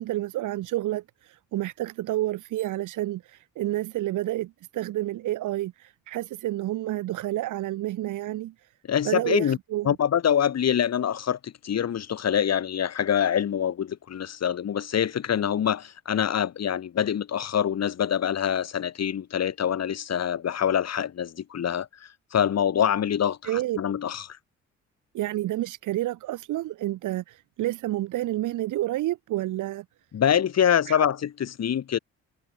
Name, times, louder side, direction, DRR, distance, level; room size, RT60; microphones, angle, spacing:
voice 1, 0.0-8.5 9.1-9.9 23.5-23.8 25.1-29.8 30.9-31.1, right 15 dB, 85° right, 3.7 m, -29 dB
voice 2, 8.9-9.6 9.8-24.4 30.1-32.0, left 9 dB, 60° left, 4.4 m, -25 dB
cardioid pair, 90°, 30 cm